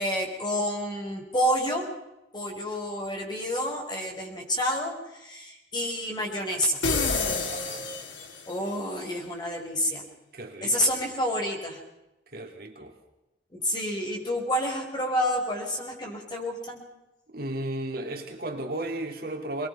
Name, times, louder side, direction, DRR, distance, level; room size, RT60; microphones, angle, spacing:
voice 1, 0.0-1.9 2.3-6.8 8.5-10.0 10.6-11.8 13.5-16.8, equal, 25° left, 0 dB, 5.5 m, -29 dB
sound 1, 6.8-8.6, left 3 dB, 85° left, 3.0 m, -28 dB
voice 2, 7.4-7.9 10.3-10.9 12.3-12.9 17.3-19.7, right 1 dB, 55° right, 2 dB, 3.0 m, -34 dB
24.0 x 21.5 x 5.7 m, 0.93 s
head